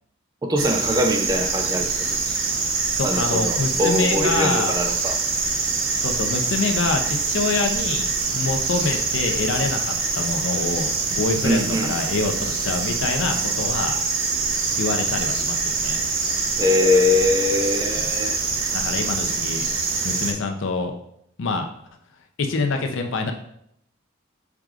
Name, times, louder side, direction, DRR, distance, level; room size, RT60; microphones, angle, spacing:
voice 1, 0.4-2.4 3.0-5.2 11.4-11.9 16.6-18.4, left 2 dB, 20° right, 4 dB, 0.4 m, -22 dB
sound 1, 0.6-20.3, right 4 dB, 75° right, 0.7 m, -25 dB
voice 2, 3.0-4.7 6.0-8.1 8.3-14.0 14.8-16.0 18.0-18.1 18.7-19.7 20.0-20.9 21.4-21.7 22.4-23.3, left 3 dB, 65° left, 5 dB, 0.5 m, -26 dB
4.7 x 3.6 x 2.4 m, 0.72 s
head